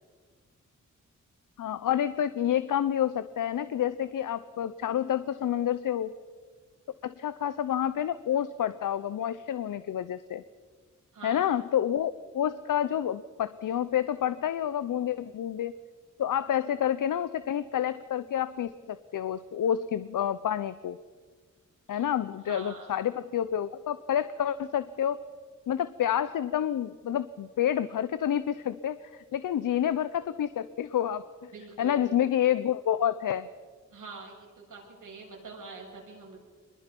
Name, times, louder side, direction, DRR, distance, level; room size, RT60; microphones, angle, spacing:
voice 1, 1.6-6.1 7.0-10.4 11.2-15.7 16.2-21.0 21.9-25.2 25.7-31.5 31.8-33.5, left 10 dB, 90° left, 14 dB, 0.7 m, -29 dB
voice 2, 11.1-11.5 21.9-22.1 22.5-23.1 31.5-32.0 33.9-36.4, right 4 dB, 85° right, -1 dB, 7.2 m, -45 dB
25.0 x 21.5 x 5.4 m, 1.5 s
cardioid pair, 70°, 31 cm